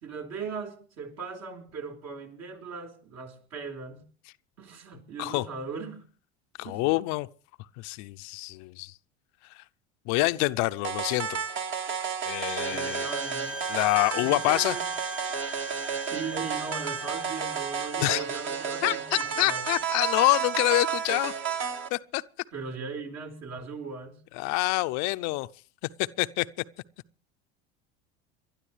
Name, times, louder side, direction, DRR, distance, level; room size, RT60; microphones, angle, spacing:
voice 1, 0.0-4.0 4.6-6.0 6.6-7.0 12.7-13.6 14.1-14.9 16.0-19.7 22.5-24.2, right 5 dB, 55° right, 4.4 m, -39 dB
voice 2, 6.6-7.3 7.8-8.9 9.6-9.7 10.1-11.4 12.2-13.1 13.7-14.8 18.0-18.2 18.8-22.2 24.3-25.5 26.2-26.5, left 22 dB, 60° left, 0.7 m, -27 dB
sound 1, 10.8-21.9, right 7 dB, 40° right, 1.9 m, -32 dB
Bowed string instrument, 12.2-18.0, equal, 5° right, 0.6 m, -40 dB
28.5 x 12.0 x 3.3 m
hypercardioid pair, 80°, 32 cm